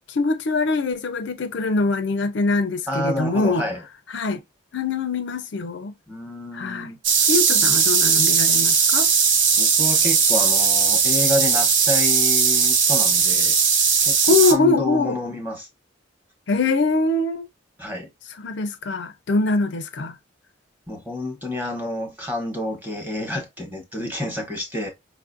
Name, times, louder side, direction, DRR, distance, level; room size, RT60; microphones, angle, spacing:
voice 1, 0.1-3.7 4.1-4.4 4.7-5.9 6.5-6.9 7.3-9.1 14.3-15.2 16.5-17.5 18.4-20.1, left 3 dB, 60° left, 0.4 m, -23 dB
voice 2, 2.9-3.8 6.1-7.0 9.5-13.6 14.0-15.7 17.8-18.1 20.9-24.9, left 1 dB, 10° right, 1.0 m, -29 dB
sound 1, 7.0-14.5, right 6 dB, 65° right, 0.8 m, -18 dB
4.9 x 2.4 x 2.5 m
head